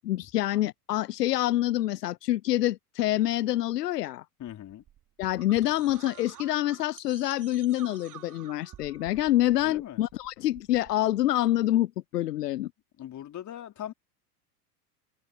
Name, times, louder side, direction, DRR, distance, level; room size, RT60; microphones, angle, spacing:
voice 1, 0.0-4.2 5.2-12.7, left 14 dB, 90° left, 0.6 m, -26 dB
voice 2, 4.4-4.8 9.6-10.0 13.0-13.9, left 11 dB, 40° left, 3.6 m, -40 dB
sound 1, 4.5-11.2, right 11 dB, 40° right, 3.7 m, -50 dB
hypercardioid pair, 85°, 46 cm